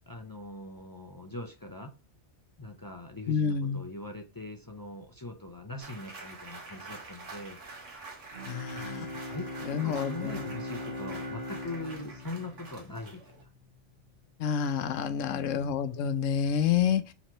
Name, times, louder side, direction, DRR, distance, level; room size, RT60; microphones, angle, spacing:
voice 1, 0.1-1.9 2.6-7.6 8.7-13.5 15.2-16.2, left 2 dB, 30° left, 0.4 m, -42 dB
voice 2, 3.3-3.8 8.5-9.1 9.7-10.5 14.4-17.0, left 7 dB, 80° left, 0.9 m, -28 dB
sound 1, 5.8-13.4, right 3 dB, 75° right, 1.6 m, -47 dB
Bowed string instrument, 8.3-13.3, left 1 dB, 40° right, 1.6 m, -40 dB
3.9 x 3.0 x 4.3 m
omnidirectional pair, 1.3 m